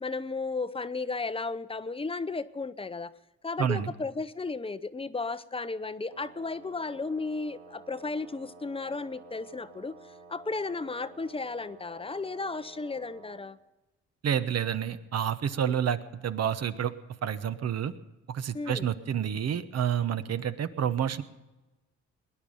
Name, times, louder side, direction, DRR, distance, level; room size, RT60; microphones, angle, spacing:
voice 1, 0.0-3.1 3.4-9.9 10.3-13.6 15.6-15.8 18.5-18.9, left 3 dB, 20° left, 13 dB, 0.7 m, -34 dB
voice 2, 3.6-3.9 14.2-16.9 17.2-17.9 18.3-21.2, right 9 dB, 55° right, 11 dB, 1.1 m, -29 dB
Wind instrument woodwind instrument, 6.1-13.5, right 4 dB, 80° right, 3.9 m, -52 dB
20.0 x 10.5 x 5.6 m, 1.1 s
cardioid pair, 90°, 30 cm